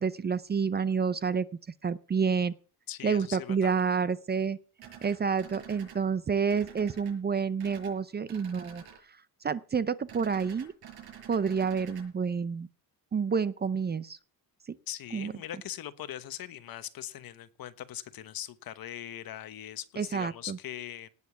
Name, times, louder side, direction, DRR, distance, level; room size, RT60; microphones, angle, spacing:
voice 1, 0.0-1.5 1.8-2.5 3.0-4.6 5.0-8.8 9.4-10.7 11.3-12.7 13.1-14.2 14.7-14.8 15.1-15.3 20.0-20.6, right 6 dB, 25° right, 0.6 m, -29 dB
voice 2, 2.9-3.7 14.9-21.1, left 11 dB, 65° left, 1.2 m, -41 dB
sound 1, 4.8-6.0 6.5-7.1 7.6-7.9 8.3-9.0 10.1-12.0, right 8 dB, 75° right, 6.5 m, -48 dB
18.0 x 7.0 x 7.1 m
cardioid pair, 140°, 38 cm